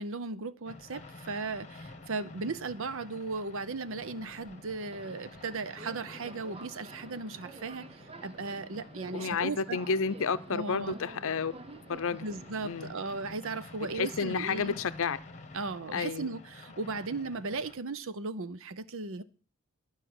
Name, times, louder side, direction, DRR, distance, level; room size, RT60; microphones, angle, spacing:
voice 1, 0.0-9.8 10.5-11.0 12.2-14.8 15.5-19.2, right 3 dB, 65° right, 0.8 m, -37 dB
sound 1, 0.7-17.8, left 2 dB, 35° left, 1.1 m, -50 dB
Subway metro underground, 3.8-13.4, right 3 dB, 25° right, 0.4 m, -51 dB
voice 2, 9.1-11.5 11.9-12.2 12.6-12.9 13.9-15.2 15.9-16.3, left 5 dB, 65° left, 0.6 m, -31 dB
12.0 x 5.3 x 7.9 m
head